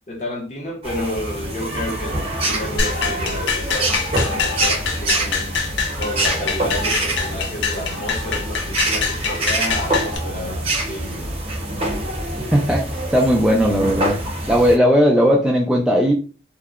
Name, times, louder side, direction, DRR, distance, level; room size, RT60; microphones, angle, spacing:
voice 1, 0.1-11.3, left 1 dB, 40° left, 0.7 m, -31 dB
sound 1, 0.8-14.8, right 1 dB, 35° right, 0.7 m, -25 dB
sound 2, 2.8-10.2, left 5 dB, 90° left, 0.6 m, -25 dB
voice 2, 12.4-14.2 14.5-16.1, equal, 5° right, 0.3 m, -17 dB
2.7 x 2.1 x 2.4 m
head